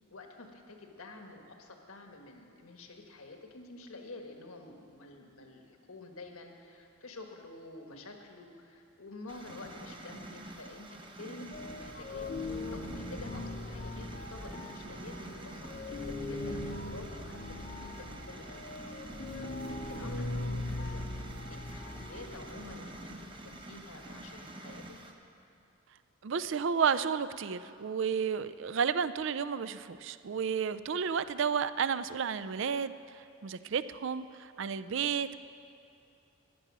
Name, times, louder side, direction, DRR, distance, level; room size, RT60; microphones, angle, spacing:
voice 1, 0.1-12.3 12.7-18.8 19.4-24.8, left 2 dB, 80° left, 3 dB, 1.4 m, -49 dB
sound 1, 9.3-25.1, right 1 dB, 25° right, 0.8 m, -47 dB
sound 2, 11.5-24.3, left 2 dB, 40° left, 0.7 m, -40 dB
voice 2, 26.2-35.4, right 6 dB, 60° right, 14 dB, 0.4 m, -32 dB
14.5 x 10.0 x 6.0 m, 2.5 s
head